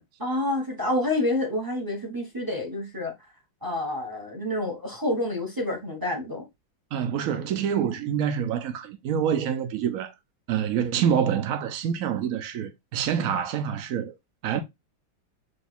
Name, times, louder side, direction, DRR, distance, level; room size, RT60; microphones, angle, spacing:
voice 1, 0.0-3.1 3.6-6.4, left 1 dB, 15° right, 0.8 m, -28 dB
voice 2, 6.9-10.1 10.5-14.1 14.4-14.6, right 8 dB, 80° right, 0.7 m, -26 dB
5.0 x 2.6 x 4.1 m
omnidirectional pair, 2.1 m